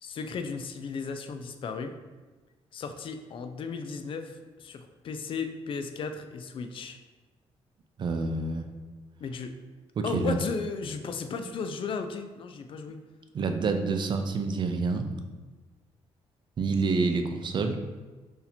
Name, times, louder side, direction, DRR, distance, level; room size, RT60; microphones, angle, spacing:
voice 1, 0.0-1.9 2.7-7.0 9.2-9.5 10.0-13.0, left 5 dB, 50° left, 8 dB, 0.3 m, -35 dB
voice 2, 8.0-8.6 10.0-10.4 13.3-15.1 16.6-17.8, right 4 dB, 45° right, 6 dB, 0.4 m, -27 dB
2.8 x 2.7 x 4.0 m, 1.3 s
cardioid pair, 90°, 11 cm